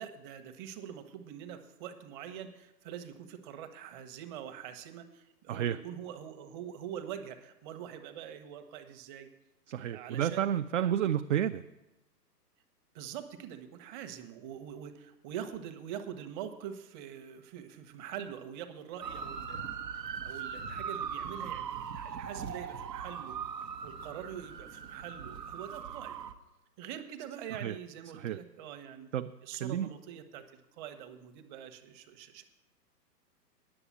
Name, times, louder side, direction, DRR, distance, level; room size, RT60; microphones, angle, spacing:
voice 1, 0.0-9.3 9.9-10.5 10.8-10.9 12.9-19.6 20.2-23.4 23.8-26.2 26.8-29.1 29.4-32.4, right 9 dB, 30° right, 8 dB, 1.0 m, -44 dB
voice 2, 9.7-11.6 27.6-27.7 28.1-28.4 29.1-29.3 29.6-29.9, right 10 dB, 50° right, 9 dB, 0.5 m, -30 dB
sound 1, 19.0-26.3, right 7 dB, 80° right, 1.1 m, -40 dB
10.0 x 7.0 x 8.4 m, 0.98 s
hypercardioid pair, 130°, 49 cm